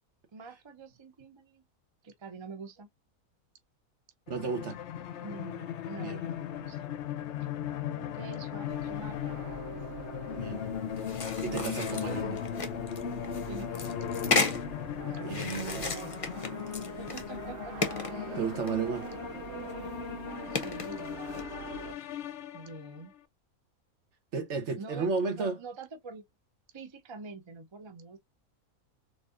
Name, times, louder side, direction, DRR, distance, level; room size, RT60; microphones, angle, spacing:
voice 1, 0.3-1.6 2.0-2.9 5.2-6.9 8.0-9.4 11.8-12.3 13.5-14.6 15.1-16.3 17.0-17.7 20.5-21.5 22.5-23.1 24.8-26.2 26.7-28.2, right 3 dB, 35° right, 0.4 m, -45 dB
sound 1, 4.3-23.0, left 9 dB, 60° left, 0.8 m, -37 dB
voice 2, 4.3-4.8 6.0-6.2 10.3-10.6 11.4-12.4 15.2-15.9 18.3-19.1 24.3-25.6, right 5 dB, 55° right, 1.3 m, -33 dB
sound 2, 8.7-21.9, right 8 dB, 85° right, 1.1 m, -45 dB
sound 3, 11.0-14.6 15.3-17.4 17.8-19.2 19.6-19.7 20.5-21.4, left 4 dB, 40° left, 0.5 m, -34 dB
4.2 x 3.3 x 2.4 m
omnidirectional pair, 1.5 m